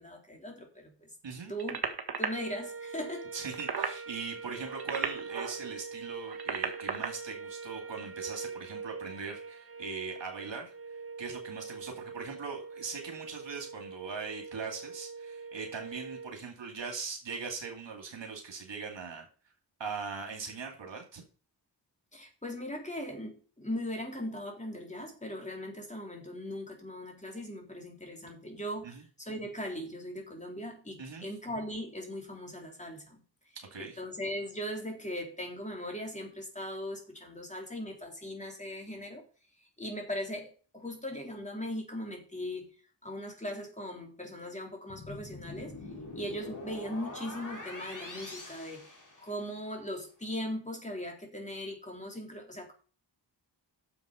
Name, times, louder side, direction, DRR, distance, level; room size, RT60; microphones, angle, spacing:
voice 1, 0.0-1.1 1.5-1.8 2.2-3.4 22.1-33.2 33.8-39.2 39.6-42.7 43.0-45.7 46.1-52.7, equal, 15° left, 1 dB, 3.5 m, -39 dB
sound 1, 1.6-2.3 3.4-4.0 4.6-5.6 6.2-7.1 8.2-8.4, right 6 dB, 60° right, 1.7 m, -34 dB
sound 2, 2.2-16.3, right 4 dB, 30° right, 1.0 m, -44 dB
voice 2, 3.3-10.7 11.2-19.3 19.8-21.2 28.8-29.0 31.0-31.3 33.7-34.0, right 5 dB, 90° right, 2 dB, 2.5 m, -40 dB
sound 3, 44.9-49.6, left 2 dB, 45° left, 3.3 m, -44 dB
9.7 x 7.1 x 5.1 m, 0.38 s
wide cardioid pair, 110°, 43 cm